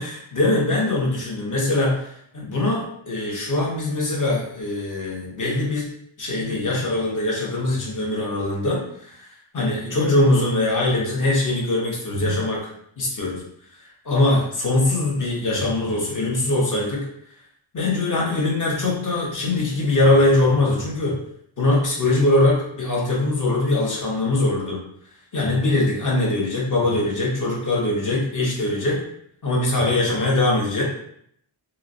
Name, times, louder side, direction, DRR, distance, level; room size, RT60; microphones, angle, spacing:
voice 1, 0.0-5.9 6.2-9.2 9.5-12.7 13.0-13.4 14.0-17.0 17.7-21.2 21.6-24.8 25.3-29.0 29.4-30.8, left 2 dB, 40° left, -3 dB, 0.9 m, -22 dB
3.9 x 2.0 x 2.5 m, 0.68 s
wide cardioid pair, 150°, 47 cm